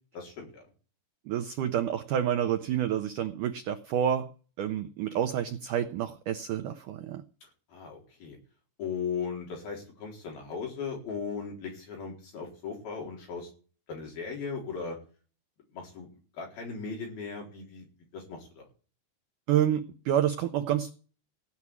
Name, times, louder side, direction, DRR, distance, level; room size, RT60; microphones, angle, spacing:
voice 1, 0.1-0.7 7.4-8.4 8.8-13.5 13.9-15.0 15.7-16.1 16.3-17.9 18.1-18.7, left 5 dB, 65° left, 0 dB, 5.8 m, -37 dB
voice 2, 1.3-4.3 4.6-7.2 19.5-20.9, right 10 dB, 80° right, 8 dB, 1.8 m, -28 dB
16.0 x 6.0 x 9.7 m, 0.39 s
omnidirectional pair, 4.7 m